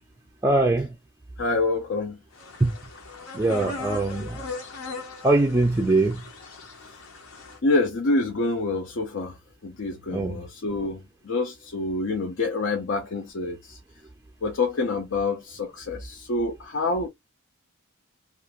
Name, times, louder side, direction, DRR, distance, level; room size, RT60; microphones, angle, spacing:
voice 1, 0.4-0.9 2.6-2.7 3.3-4.4 5.2-6.2 10.1-10.4, right 2 dB, 15° right, 0.3 m, -22 dB
voice 2, 1.4-2.2 7.6-9.4 9.6-13.8 14.4-17.1, left 3 dB, 60° left, 0.5 m, -27 dB
sound 1, 2.4-7.6, left 3 dB, 80° left, 0.9 m, -39 dB
2.5 x 2.5 x 2.8 m
head